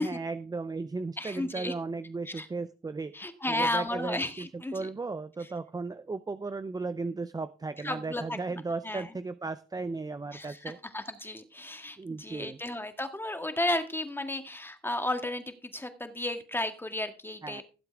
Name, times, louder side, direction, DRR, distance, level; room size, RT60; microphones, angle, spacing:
voice 1, 0.0-10.8 12.0-12.6 17.4-17.6, right 3 dB, 20° right, 12 dB, 0.6 m, -36 dB
voice 2, 1.2-1.7 2.3-2.5 3.1-4.9 7.8-8.4 8.8-9.1 10.3-10.6 10.9-17.6, left 1 dB, 10° left, 7 dB, 1.9 m, -33 dB
17.0 x 7.7 x 3.6 m, 0.34 s
cardioid pair, 90°, 20 cm